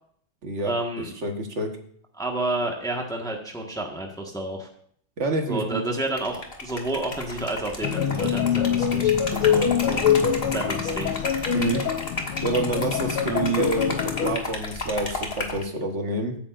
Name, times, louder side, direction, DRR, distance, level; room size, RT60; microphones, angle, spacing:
voice 1, 0.6-1.1 2.2-4.7 5.5-10.3 10.5-11.1 13.3-13.4, right 2 dB, ahead, 1 dB, 1.0 m, -30 dB
voice 2, 1.2-1.7 5.2-5.8 11.5-11.8 12.4-16.4, right 2 dB, 40° right, 4 dB, 1.3 m, -27 dB
Liquid, 6.1-15.6, left 2 dB, 30° left, 1.2 m, -33 dB
sound 1, 7.8-14.4, left 8 dB, 80° left, 1.6 m, -24 dB
15.5 x 9.0 x 2.5 m, 0.63 s
omnidirectional pair, 2.4 m